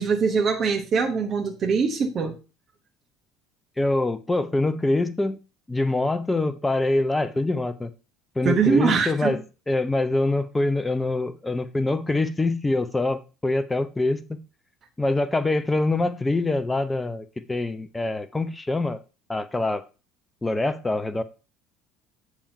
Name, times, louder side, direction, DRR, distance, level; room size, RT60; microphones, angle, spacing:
voice 1, 0.0-2.4 8.4-9.4, right 5 dB, 35° right, 1.1 m, -22 dB
voice 2, 3.8-5.4 5.7-7.9 8.4-9.4 9.7-14.4 15.0-19.0 19.3-19.8 20.4-21.2, left 2 dB, 10° left, 0.8 m, -24 dB
8.6 x 3.6 x 5.6 m
figure-of-eight pair, 60°, 0 cm